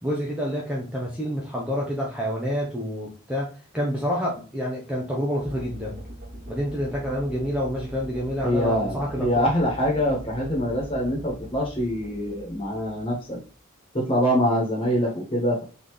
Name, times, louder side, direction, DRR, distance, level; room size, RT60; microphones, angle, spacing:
voice 1, 0.0-6.0 6.5-9.5, equal, 5° right, -3 dB, 0.8 m, -28 dB
sound 1, 5.4-13.6, right 1 dB, 40° right, 0.9 m, -41 dB
voice 2, 8.4-13.4 13.9-15.6, equal, 25° left, -2 dB, 1.6 m, -24 dB
3.9 x 3.9 x 3.3 m, 0.35 s
head